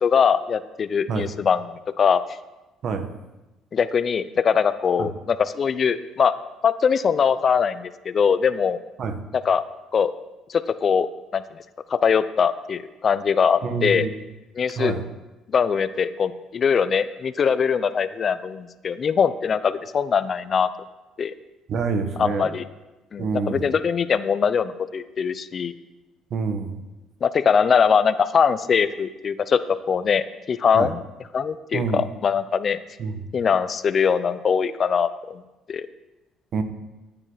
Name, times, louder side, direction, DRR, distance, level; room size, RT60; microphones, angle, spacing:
voice 1, 0.0-1.6 2.0-2.2 3.7-6.4 6.6-8.8 9.4-9.6 9.9-10.1 10.5-11.1 11.3-11.4 11.9-14.1 14.6-14.9 15.5-20.7 21.2-21.3 22.2-22.6 23.1-25.7 27.2-31.0 31.3-32.8 33.3-35.4 35.7-35.9, left 6 dB, 45° left, 14 dB, 0.7 m, -22 dB
voice 2, 13.6-14.2 14.8-15.0 21.7-22.6 23.2-23.7 26.3-26.8 30.7-30.9 31.7-32.0 33.0-33.2 36.5-36.6, right 5 dB, 55° right, 8 dB, 1.4 m, -27 dB
14.5 x 8.9 x 4.1 m, 1.1 s
supercardioid pair, 70°, 0 cm